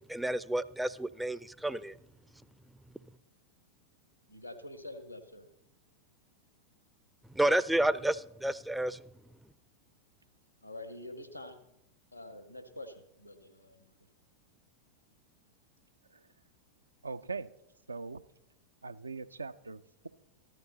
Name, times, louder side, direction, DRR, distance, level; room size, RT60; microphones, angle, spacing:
voice 1, 0.1-2.0 7.3-9.1, right 1 dB, 5° right, 0.4 m, -30 dB
voice 2, 4.3-5.5 10.6-11.6 12.1-13.9, left 1 dB, 90° left, 1.3 m, -46 dB
voice 3, 17.0-17.5 17.9-18.2 18.8-20.1, right 4 dB, 80° right, 0.5 m, -41 dB
14.5 x 12.0 x 4.0 m
figure-of-eight pair, 90°, 0 cm